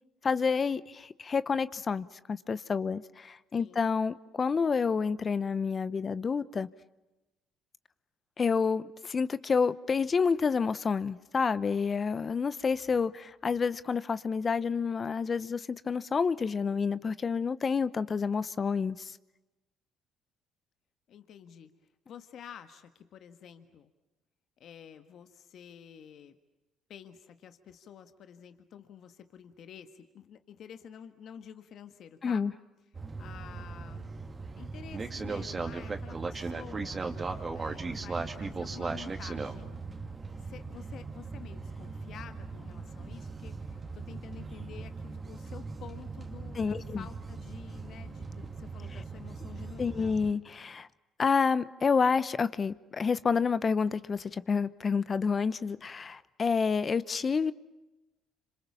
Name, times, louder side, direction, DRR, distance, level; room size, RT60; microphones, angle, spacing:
voice 1, 0.2-6.7 8.4-19.1 32.2-32.5 46.5-47.1 49.8-50.9 51.2-57.5, left 5 dB, 40° left, 0.8 m, -29 dB
voice 2, 3.5-3.9 21.1-21.7 22.1-23.9 24.6-26.4 26.9-32.4 33.2-34.1 34.6-37.1 37.5-39.8 40.4-50.1, left 8 dB, 65° left, 1.6 m, -49 dB
sound 1, 32.9-50.3, right 4 dB, 30° right, 2.4 m, -38 dB
27.0 x 26.5 x 7.2 m
supercardioid pair, 75°, 0 cm